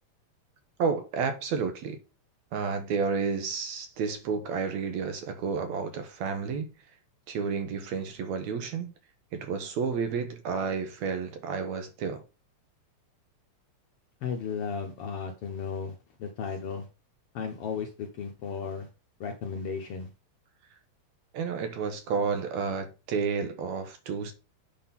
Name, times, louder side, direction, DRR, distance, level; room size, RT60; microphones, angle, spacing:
voice 1, 0.8-2.0 2.5-6.7 7.3-8.9 9.3-12.2 21.3-24.3, right 5 dB, 70° right, 2.1 m, -31 dB
voice 2, 14.2-16.9 17.3-18.9 19.2-20.1, left 6 dB, 70° left, 1.4 m, -35 dB
8.4 x 3.7 x 5.7 m
omnidirectional pair, 3.5 m